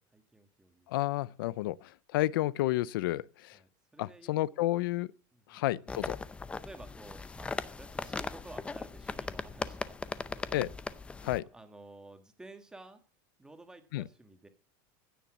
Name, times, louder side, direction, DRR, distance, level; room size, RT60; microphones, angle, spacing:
voice 1, 0.1-0.9 3.5-4.6 5.3-5.6 6.6-10.6 11.0-13.0 13.4-14.5, right 2 dB, 5° right, 1.5 m, -53 dB
voice 2, 0.9-3.6 4.0-5.1 5.5-6.2 10.5-10.7 11.2-11.5 13.9-14.0, left 16 dB, 85° left, 0.5 m, -31 dB
sound 1, 5.9-11.4, left 4 dB, 10° left, 0.5 m, -39 dB
16.0 x 7.1 x 7.1 m
supercardioid pair, 160°, 11 cm